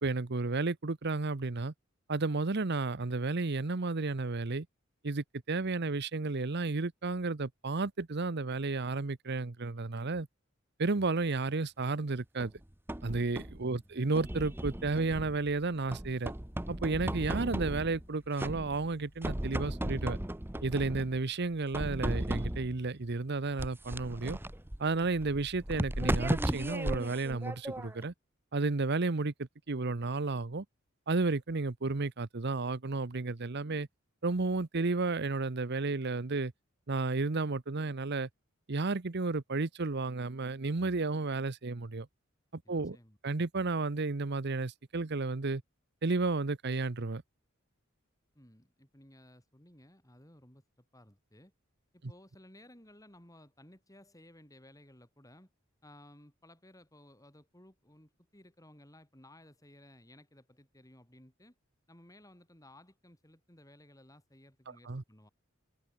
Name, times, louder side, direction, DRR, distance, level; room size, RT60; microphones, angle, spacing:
voice 1, 0.0-1.7 2.1-4.7 5.0-10.3 10.8-12.5 13.0-16.3 16.7-20.2 20.6-24.4 24.8-28.1 28.5-30.6 31.1-33.9 34.2-36.5 36.9-38.3 38.7-42.1 42.5-43.0 43.2-45.6 46.0-47.2 64.9-65.0, right 3 dB, 55° right, 0.9 m, -32 dB
sound 1, 12.4-13.6 14.2-15.5 15.9-18.1 18.4-18.9 19.2-21.2 21.7-22.8 23.6-28.1, right 1 dB, 10° right, 0.9 m, -36 dB
voice 2, 13.6-13.9 42.6-43.2 48.3-51.5 51.9-55.5 55.8-61.6 61.9-65.3, left 1 dB, 15° left, 7.9 m, -58 dB
sound 2, 14.0-26.5, equal, 50° left, 5.1 m, -62 dB
head